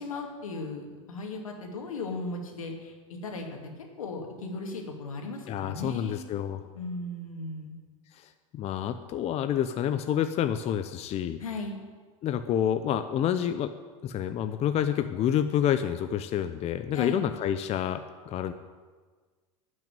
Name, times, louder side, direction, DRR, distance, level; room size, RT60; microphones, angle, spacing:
voice 1, 0.0-6.3 6.7-7.7 11.4-11.8 16.9-17.2, left 3 dB, 85° left, 2 dB, 2.4 m, -37 dB
voice 2, 5.5-6.6 8.2-11.4 12.2-13.7 14.0-18.5, left 9 dB, 40° left, 9 dB, 0.7 m, -28 dB
12.0 x 6.4 x 9.0 m, 1.5 s
hypercardioid pair, 90°, 17 cm